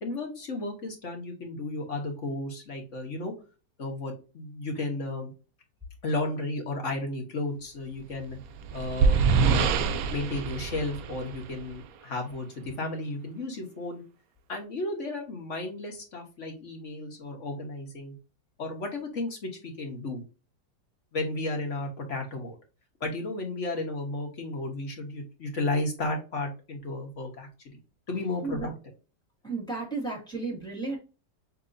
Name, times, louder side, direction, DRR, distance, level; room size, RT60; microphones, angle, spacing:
voice 1, 0.0-3.3 3.8-5.3 6.0-8.4 8.7-9.7 10.1-14.0 14.5-18.1 18.6-20.2 21.1-22.6 23.0-27.8 28.1-28.7, left 2 dB, 45° left, 1 dB, 1.6 m, -33 dB
sound 1, 8.2-11.8, right 5 dB, 70° right, 0.9 m, -25 dB
voice 2, 29.4-31.0, right 3 dB, ahead, -3 dB, 2.0 m, -33 dB
6.5 x 2.9 x 2.6 m, 0.31 s
omnidirectional pair, 1.9 m